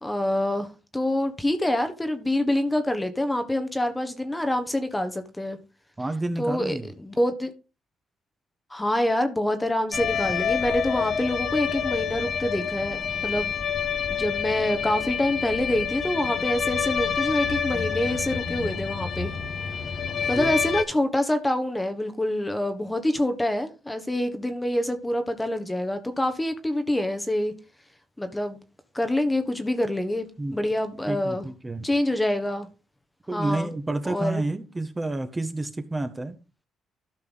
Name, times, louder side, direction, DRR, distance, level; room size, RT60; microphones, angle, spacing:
voice 1, 0.0-5.6 6.4-7.5 8.7-13.6 14.1-19.3 20.3-27.5 28.2-28.6 28.9-30.2 30.5-31.4 31.8-32.7 33.3-33.7 34.0-34.4, left 1 dB, 10° left, 1.4 m, -26 dB
voice 2, 6.0-6.9 20.1-20.5 30.4-30.6 31.1-31.9 33.3-36.3, right 2 dB, 20° right, 1.5 m, -30 dB
sound 1, 9.9-20.8, left 7 dB, 50° left, 1.3 m, -28 dB
13.0 x 5.6 x 4.0 m
cardioid pair, 90°, 0 cm